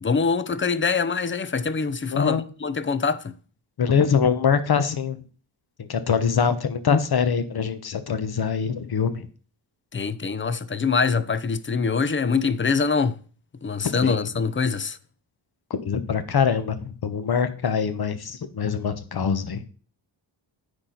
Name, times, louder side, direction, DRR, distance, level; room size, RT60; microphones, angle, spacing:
voice 1, 0.0-3.3 9.9-13.2 13.6-15.0, left 5 dB, 25° left, 0.5 m, -24 dB
voice 2, 2.1-2.4 3.8-5.2 5.8-9.3 14.0-14.3 15.7-19.6, left 6 dB, 55° left, 1.0 m, -23 dB
9.6 x 4.4 x 3.9 m
cardioid pair, 90°, 46 cm